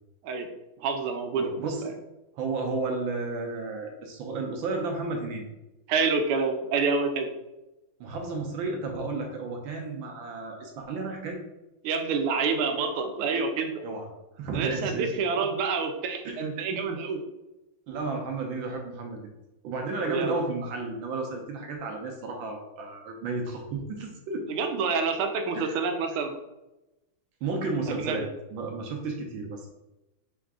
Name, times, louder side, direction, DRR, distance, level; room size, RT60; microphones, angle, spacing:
voice 1, 0.8-1.7 5.9-7.3 11.8-13.8 14.5-17.2 20.0-20.4 24.5-26.3 27.9-28.3, right 4 dB, 90° right, 6 dB, 1.5 m, -28 dB
voice 2, 1.4-1.9 2.3-5.5 8.0-11.4 13.8-14.1 14.4-15.5 16.2-16.5 17.9-19.3 19.6-24.4 25.5-25.8 27.4-29.7, right 3 dB, 70° right, 2 dB, 1.3 m, -33 dB
4.6 x 2.5 x 3.5 m, 0.97 s
omnidirectional pair, 2.3 m